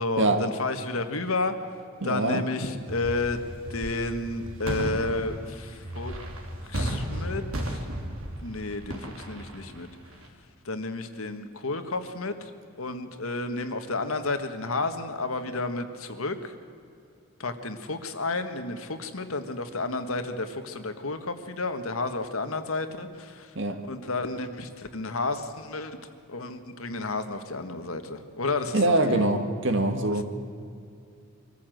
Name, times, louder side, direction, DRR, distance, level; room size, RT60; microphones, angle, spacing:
voice 1, 0.0-1.6 2.0-3.4 3.7-6.1 6.6-7.8 8.4-9.9 10.6-12.4 12.8-16.5 17.4-23.5 23.9-26.0 26.3-29.3, left 3 dB, 75° left, 8 dB, 1.5 m, -31 dB
voice 2, 2.0-2.4 23.5-23.8 28.7-30.2, right 2 dB, 60° right, 7 dB, 1.7 m, -24 dB
sound 1, 2.9-10.3, right 1 dB, 80° right, 2.8 m, -35 dB
24.5 x 14.0 x 7.9 m, 2.5 s
head